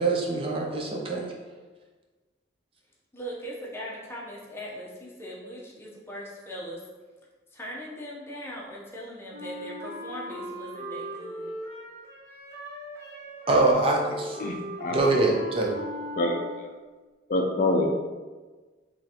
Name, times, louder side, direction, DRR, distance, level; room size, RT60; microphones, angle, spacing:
voice 1, 0.0-1.3 13.5-14.4 14.9-15.8, right 2 dB, 30° right, -1 dB, 0.4 m, -24 dB
voice 2, 3.1-6.8 7.5-11.5, equal, 15° left, -4 dB, 0.7 m, -39 dB
Wind instrument woodwind instrument, 9.3-16.9, equal, 55° right, 0.9 m, -39 dB
voice 3, 14.4-15.0 16.2-16.7 17.3-17.9, left 2 dB, 45° left, 2 dB, 0.4 m, -26 dB
4.0 x 3.1 x 2.8 m, 1.3 s
head